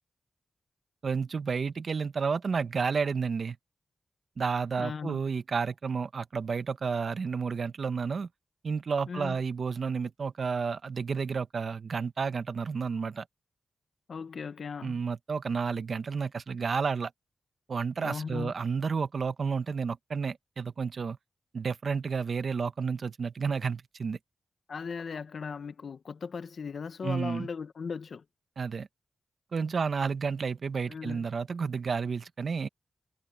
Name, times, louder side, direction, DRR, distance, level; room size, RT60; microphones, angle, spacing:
voice 1, 1.0-3.6 4.4-8.3 8.6-13.2 14.8-17.1 17.7-21.2 21.5-24.2 27.0-27.5 28.6-28.9 29.5-32.7, right 5 dB, 65° right, 1.2 m, -31 dB
voice 2, 4.8-5.2 9.1-9.4 14.1-15.0 18.0-18.5 24.7-28.2 30.9-31.2, left 5 dB, 70° left, 1.3 m, -37 dB
cardioid pair, 60°, 0 cm